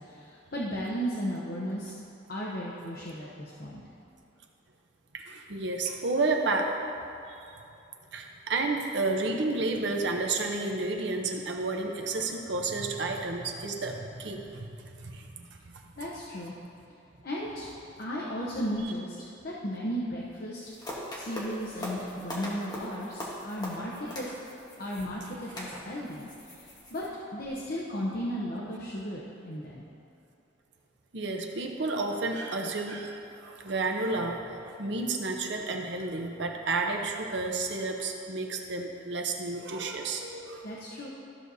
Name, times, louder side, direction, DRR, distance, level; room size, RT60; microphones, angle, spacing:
voice 1, 0.0-1.9 2.3-3.8 16.0-16.5 17.2-17.7 18.0-19.2 19.4-20.6 21.1-24.3 24.8-26.3 26.9-27.0 27.3-29.8 40.6-41.1, equal, 50° left, -6 dB, 0.8 m, -35 dB
voice 2, 5.1-6.8 7.1-7.4 8.1-15.9 31.1-40.8, right 3 dB, 60° right, 2 dB, 0.8 m, -31 dB
sound 1, 20.6-27.1, equal, 20° left, 1.2 m, -41 dB
13.5 x 6.3 x 2.7 m, 2.7 s
head